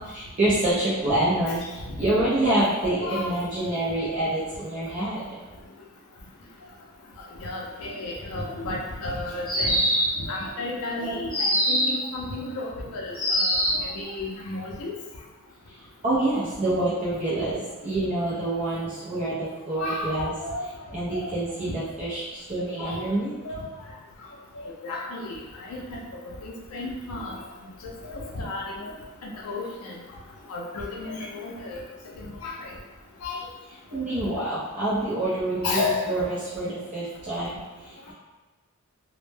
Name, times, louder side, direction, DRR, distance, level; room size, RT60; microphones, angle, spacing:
voice 1, 0.1-5.4 16.0-20.3 20.9-23.3 33.9-38.1, right 1 dB, 30° right, -10 dB, 0.4 m, -27 dB
voice 2, 2.8-3.3 7.4-9.8 10.2-14.9 19.8-20.1 20.4-20.6 21.1-21.3 21.8-21.9 22.8-23.0 23.4-23.7 24.8-26.0 26.4-27.4 28.0-28.9 29.2-30.0 30.5-31.8 32.2-32.7 33.2-33.4 35.6-36.2, left 2 dB, 75° left, -2 dB, 0.4 m, -32 dB
sound 1, 9.4-10.3 11.3-12.1 13.1-13.9, equal, 20° left, 1.0 m, -23 dB
2.1 x 2.1 x 3.2 m, 1.2 s
head